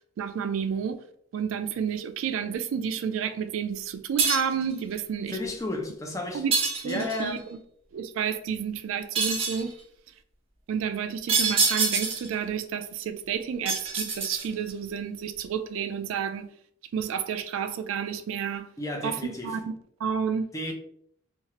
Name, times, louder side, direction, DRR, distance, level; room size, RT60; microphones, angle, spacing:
voice 1, 0.2-1.0 1.3-5.4 6.3-6.5 6.8-7.6 7.9-9.8 10.7-16.5 16.9-18.7 19.0-20.5, right 7 dB, 75° right, 0.3 m, -30 dB
sound 1, 4.2-4.6 6.5-7.3 9.2-9.7 11.3-12.3 13.7-14.7, right 4 dB, 30° right, 0.7 m, -26 dB
voice 2, 5.3-6.4 6.8-7.4 18.8-19.6 20.5-20.7, left 1 dB, 15° left, 0.4 m, -32 dB
2.8 x 2.3 x 2.8 m
head